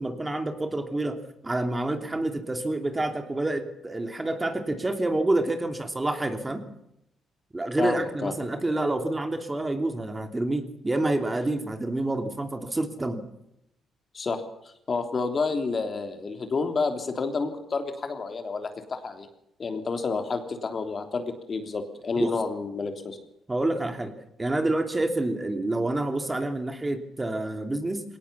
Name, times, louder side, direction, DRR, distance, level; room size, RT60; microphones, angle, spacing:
voice 1, 0.0-6.6 7.5-13.2 22.1-22.3 23.5-24.1 24.4-28.0, right 2 dB, 20° right, 6 dB, 3.0 m, -28 dB
voice 2, 7.8-8.3 14.1-14.4 14.9-19.3 19.6-23.2, left 4 dB, 40° left, 6 dB, 3.3 m, -29 dB
21.0 x 18.5 x 7.1 m, 0.81 s
cardioid pair, 90°, 0 cm